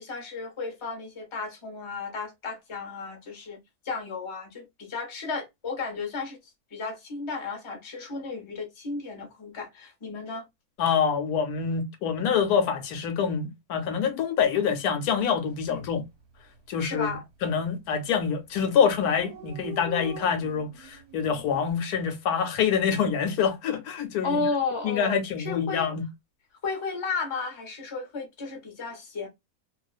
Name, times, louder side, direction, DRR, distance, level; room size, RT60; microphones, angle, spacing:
voice 1, 0.0-3.6 3.8-6.4 6.7-10.4 15.7-15.8 16.8-17.2 24.2-25.9 26.6-29.3, left 4 dB, 25° left, 0.6 m, -33 dB
voice 2, 10.8-16.0 16.7-17.1 17.4-24.4 24.8-26.0, left 7 dB, 80° left, 1.1 m, -26 dB
Dog, 15.5-15.7 16.0-16.1 16.4-17.1 17.7-17.9 18.2-18.3 18.5-18.6 18.8-21.7, right 7 dB, 55° right, 0.8 m, -42 dB
2.5 x 2.3 x 2.2 m
omnidirectional pair, 1.6 m